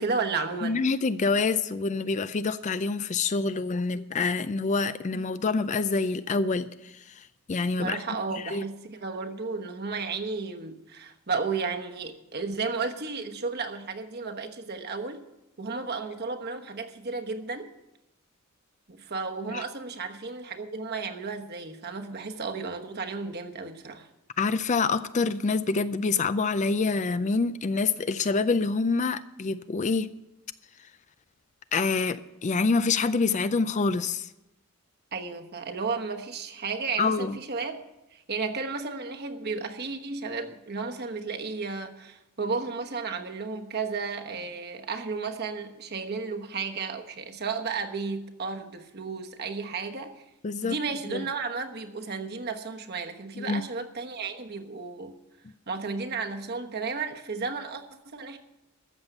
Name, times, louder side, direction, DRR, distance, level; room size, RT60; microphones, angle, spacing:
voice 1, 0.0-0.8 7.8-15.3 15.6-17.7 18.9-24.1 35.1-37.8 38.1-50.2 50.6-55.2 55.7-58.4, right 4 dB, 45° right, 5 dB, 1.2 m, -33 dB
voice 2, 0.6-8.0 8.3-8.6 19.5-19.6 24.4-30.1 31.7-34.3 37.0-37.4 50.4-50.7 51.1-51.2 53.4-53.6, left 4 dB, 35° left, 13 dB, 0.4 m, -26 dB
13.5 x 7.1 x 8.0 m, 0.90 s
head